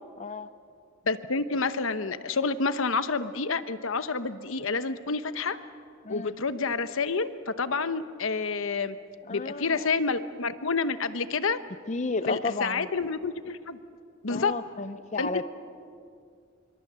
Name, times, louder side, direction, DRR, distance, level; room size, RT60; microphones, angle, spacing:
voice 1, 0.2-0.5 6.0-6.3 9.3-9.9 11.9-12.9 14.3-15.4, left 3 dB, 35° left, 11 dB, 0.6 m, -32 dB
voice 2, 1.1-5.6 6.1-9.0 9.3-11.6 12.3-13.8 14.2-14.5 15.2-15.4, left 4 dB, 70° left, 12 dB, 1.0 m, -29 dB
26.0 x 24.0 x 7.6 m, 2.3 s
head